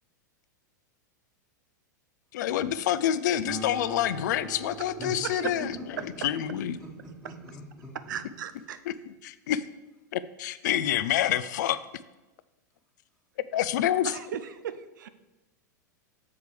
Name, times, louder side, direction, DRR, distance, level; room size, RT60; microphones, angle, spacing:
voice 1, 2.3-5.8 6.0-6.8 9.2-9.6 10.1-11.8 13.5-14.1, left 11 dB, 70° left, 14 dB, 0.4 m, -27 dB
Acoustic guitar, 3.5-8.3, right 3 dB, 55° right, 1.9 m, -44 dB
voice 2, 6.5-8.2, right 1 dB, 5° right, -5 dB, 1.4 m, -42 dB
voice 3, 8.1-8.8 14.0-15.1, right 9 dB, 80° right, 12 dB, 0.5 m, -37 dB
6.6 x 4.7 x 5.0 m, 1.0 s
hypercardioid pair, 110°, 10 cm